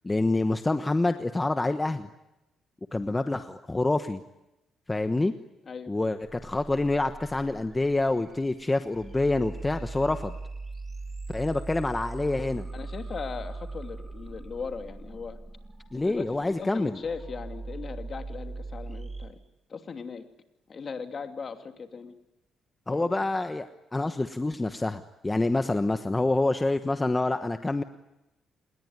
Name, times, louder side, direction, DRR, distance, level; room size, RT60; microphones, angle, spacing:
voice 1, 0.0-2.1 2.9-4.2 4.9-5.3 5.9-10.3 11.3-12.7 15.9-17.0 22.9-27.8, left 2 dB, 15° left, 8 dB, 1.2 m, -27 dB
sound 1, 6.2-19.3, right 3 dB, 25° right, 7.9 m, -40 dB
voice 2, 12.7-15.4 15.9-19.4 19.7-20.2 20.7-22.1 22.9-23.3, left 5 dB, 45° left, 6 dB, 2.8 m, -38 dB
28.0 x 21.0 x 9.6 m, 0.96 s
cardioid pair, 90°, 0 cm